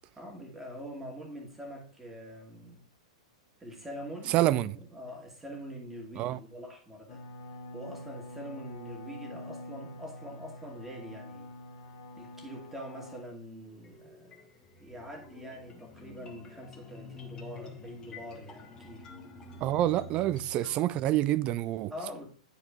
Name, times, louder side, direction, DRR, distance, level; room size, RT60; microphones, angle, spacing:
voice 1, 0.2-2.8 3.6-7.2 7.7-11.5 12.2-14.5 14.8-19.1 21.9-22.3, equal, 5° right, 2.0 m, -44 dB
voice 2, 4.3-4.8 6.2-6.4 19.6-21.9, right 14 dB, 30° right, 0.4 m, -27 dB
sound 1, 7.1-13.2, left 1 dB, 50° left, 1.4 m, -46 dB
sound 2, 13.6-20.7, left 3 dB, 20° left, 1.3 m, -48 dB
9.8 x 4.4 x 3.5 m
figure-of-eight pair, 100°, 3 cm